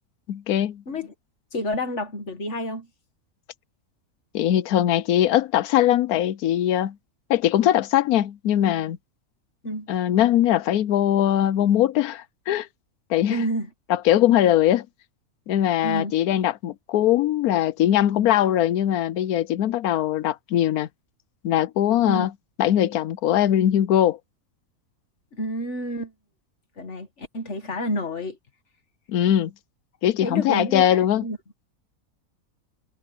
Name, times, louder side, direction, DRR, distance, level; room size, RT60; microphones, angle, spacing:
voice 1, 0.3-0.8 4.3-6.9 7.3-9.0 9.9-12.7 13.1-13.4 13.9-14.9 15.5-20.9 21.4-22.3 22.6-24.2 29.1-29.5 30.0-31.2, left 11 dB, 80° left, 1.2 m, -21 dB
voice 2, 1.5-2.9 9.6-9.9 13.3-13.7 15.8-16.1 22.0-22.3 25.3-26.1 26.8-28.4 30.2-31.4, left 1 dB, 50° left, 2.1 m, -29 dB
omnidirectional pair, 1.6 m